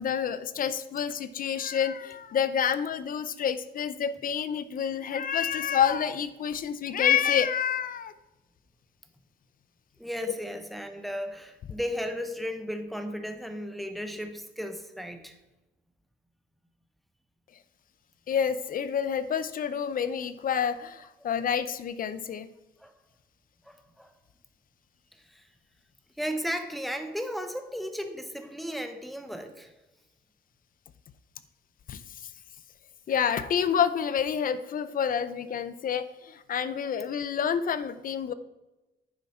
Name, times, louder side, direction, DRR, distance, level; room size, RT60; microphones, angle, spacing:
voice 1, 0.0-8.1 18.3-22.5 31.9-32.3 33.1-38.3, left 8 dB, 50° left, 14 dB, 0.6 m, -28 dB
voice 2, 10.0-15.4 22.8-22.9 23.6-24.1 25.1-25.5 26.2-29.7, equal, ahead, 6 dB, 0.9 m, -35 dB
9.7 x 7.2 x 4.4 m, 1.0 s
cardioid pair, 120°, 18 cm